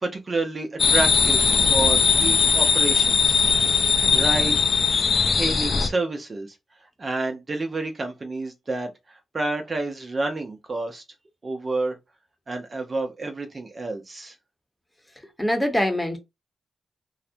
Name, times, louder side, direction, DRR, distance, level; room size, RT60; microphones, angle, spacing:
voice 1, 0.0-3.5 4.1-4.6 5.3-6.6 7.0-11.0 11.4-12.0 12.5-14.3, right 2 dB, 45° right, 0.6 m, -29 dB
sound 1, 0.8-5.9, left 6 dB, 60° left, 0.4 m, -19 dB
voice 2, 15.4-16.2, left 1 dB, 10° left, 0.9 m, -23 dB
2.4 x 2.1 x 2.7 m
supercardioid pair, 45°, 0 cm